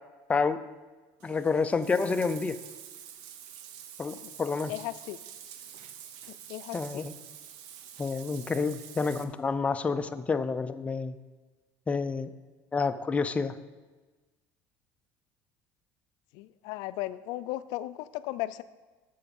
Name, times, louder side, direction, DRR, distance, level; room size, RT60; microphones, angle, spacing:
voice 1, 0.3-0.6 1.2-2.6 4.0-4.7 6.7-7.1 8.0-11.2 11.9-12.3 12.7-13.5, left 4 dB, 15° left, 10 dB, 0.5 m, -29 dB
Bathtub (filling or washing), 1.2-9.2, right 9 dB, 80° right, 0.8 m, -47 dB
voice 2, 4.7-5.2 6.3-7.0 16.3-18.6, left 16 dB, 75° left, 15 dB, 0.4 m, -36 dB
8.4 x 7.0 x 5.3 m, 1.3 s
cardioid pair, 125°, 7 cm